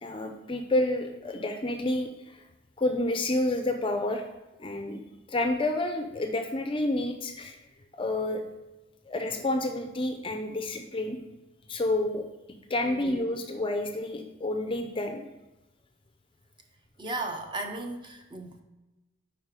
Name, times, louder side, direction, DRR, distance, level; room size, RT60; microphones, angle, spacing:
voice 1, 0.0-2.1 2.8-4.2 4.6-5.0 5.3-7.6 8.0-8.4 9.1-11.2 11.7-12.2 12.7-15.2, left 1 dB, 25° left, 6 dB, 0.4 m, -29 dB
voice 2, 12.8-13.2 17.0-18.6, right 2 dB, 25° right, 4 dB, 0.6 m, -36 dB
5.0 x 4.8 x 4.8 m, 1.1 s
head